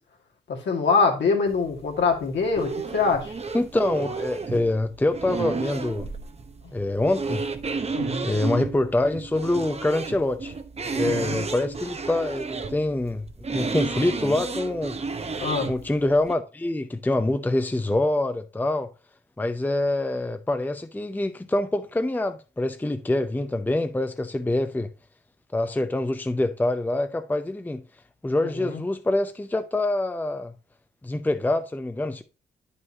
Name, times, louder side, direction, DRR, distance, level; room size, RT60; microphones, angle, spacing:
voice 1, 0.5-3.3 6.6-6.7 7.9-8.4 11.0-11.5 15.4-15.7 28.6-28.8, left 4 dB, 65° left, 2.0 m, -24 dB
sound 1, 1.5-16.3, right 4 dB, 35° right, 0.9 m, -32 dB
voice 2, 3.5-6.1 6.7-7.4 8.2-10.5 10.9-13.2 13.5-15.0 15.7-18.9 19.4-24.9 25.5-27.8 28.2-30.5 31.0-32.2, left 2 dB, 10° left, 0.6 m, -25 dB
9.3 x 5.5 x 2.8 m
supercardioid pair, 45°, 20 cm